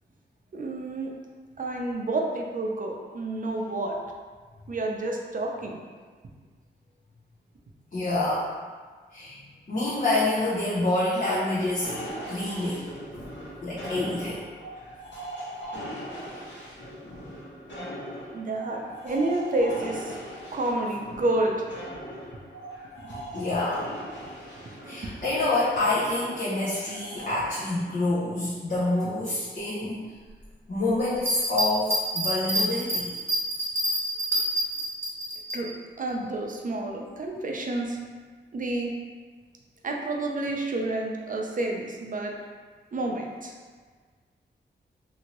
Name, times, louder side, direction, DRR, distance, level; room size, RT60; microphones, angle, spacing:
voice 1, 0.5-1.1 1.6-4.0 4.7-5.8 18.3-20.2 20.5-21.7 23.1-23.2 24.8-25.1 27.1-27.3 35.5-38.0 38.5-38.9 39.8-42.3 42.9-43.5, right 2 dB, 45° right, 0 dB, 0.5 m, -29 dB
voice 2, 7.9-8.5 9.1-11.9 12.3-12.9 13.6-14.4 23.3-23.9 24.9-30.1 30.7-33.1, left 2 dB, 45° left, -7 dB, 0.6 m, -27 dB
sound 1, 11.8-27.4, equal, 75° left, 1.0 m, -40 dB
sound 2, 31.2-35.6, equal, 15° right, 1.0 m, -27 dB
2.8 x 2.6 x 2.9 m, 1.5 s
cardioid pair, 50°, 19 cm